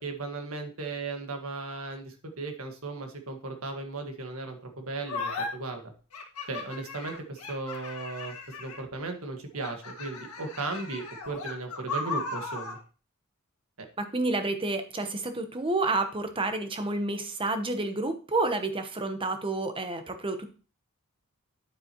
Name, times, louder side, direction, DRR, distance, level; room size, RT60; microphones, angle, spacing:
voice 1, 0.0-5.8 6.5-12.8 13.8-13.9, right 3 dB, 70° right, 4 dB, 1.6 m, -36 dB
sound 1, 5.1-5.5 6.1-8.9 9.6-12.8, left 3 dB, 75° left, 1.7 m, -36 dB
voice 2, 14.0-20.5, right 2 dB, 25° right, 7 dB, 1.0 m, -29 dB
9.3 x 7.4 x 3.0 m, 0.36 s
head